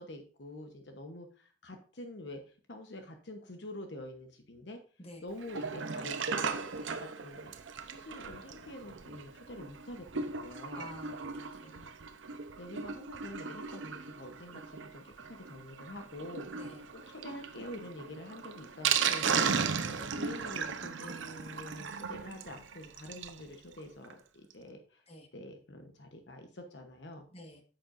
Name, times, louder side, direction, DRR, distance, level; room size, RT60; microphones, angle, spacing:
voice 1, 0.0-4.8 5.2-7.5 7.8-10.9 11.6-11.9 12.6-16.6 16.9-19.3 19.8-25.0 25.3-27.3, left 1 dB, 65° left, 5 dB, 1.0 m, -46 dB
Sink (filling or washing), 5.4-23.4 23.8-23.9 24.0-24.1 24.5-24.6, right 6 dB, 80° right, 0.7 m, -36 dB
voice 2, 10.7-11.6 16.5-16.8 19.3-19.5 25.1-25.3 27.3-27.6, left 1 dB, 30° left, 4 dB, 1.4 m, -49 dB
8.7 x 7.7 x 2.6 m, 0.39 s
head